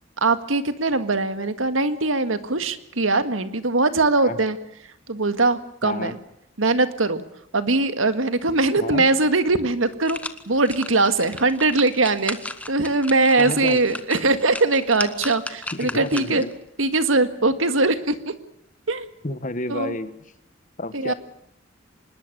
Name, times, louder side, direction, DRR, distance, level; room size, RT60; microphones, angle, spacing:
voice 1, 0.2-4.6 5.1-6.1 6.6-7.2 7.5-10.2 10.5-12.4 12.7-16.4 16.8-18.3 18.9-19.1 19.7-20.0 20.9-21.1, right 3 dB, 90° right, 11 dB, 1.9 m, -21 dB
voice 2, 5.8-6.1 8.8-9.0 13.4-14.0 15.7-16.5 19.2-20.1 20.8-21.1, left 2 dB, 40° left, 12 dB, 1.5 m, -30 dB
sound 1, 9.7-16.6 17.0-17.1, left 2 dB, 5° left, 1.2 m, -36 dB
25.5 x 20.5 x 6.9 m, 0.80 s
head